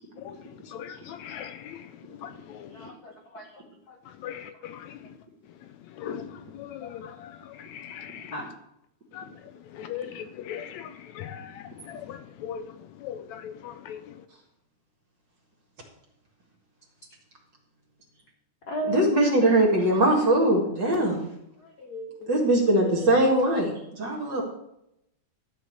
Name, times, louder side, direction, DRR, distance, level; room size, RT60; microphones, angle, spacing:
voice 1, 2.7-3.6 3.9-4.0 8.3-8.5 18.7-19.0 21.6-22.3 22.7-23.3, equal, 55° left, 1.0 m, -35 dB
voice 2, 9.8-10.8 11.2-11.4 12.4-12.6 13.0-13.2 13.4-13.5 13.9-14.0, left 9 dB, 75° left, 1.8 m, -36 dB
voice 3, 18.9-21.3 22.3-24.4, right 1 dB, 40° right, 2.1 m, -21 dB
13.0 x 4.6 x 7.8 m
omnidirectional pair, 3.5 m